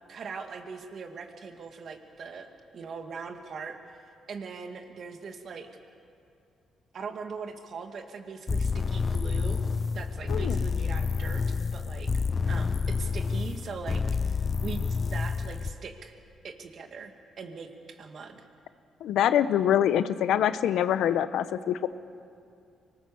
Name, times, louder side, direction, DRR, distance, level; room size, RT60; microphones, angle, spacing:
voice 1, 0.1-4.0 4.3-5.7 6.9-9.6 9.9-12.1 12.5-16.1 16.4-18.5, right 5 dB, 55° right, 5 dB, 2.1 m, -41 dB
sound 1, 8.5-15.7, left 5 dB, 35° left, 0.6 m, -29 dB
voice 2, 10.3-10.6 19.0-21.9, left 10 dB, 80° left, 13 dB, 0.8 m, -25 dB
24.5 x 19.5 x 7.1 m, 2.4 s
cardioid pair, 90°, 0 cm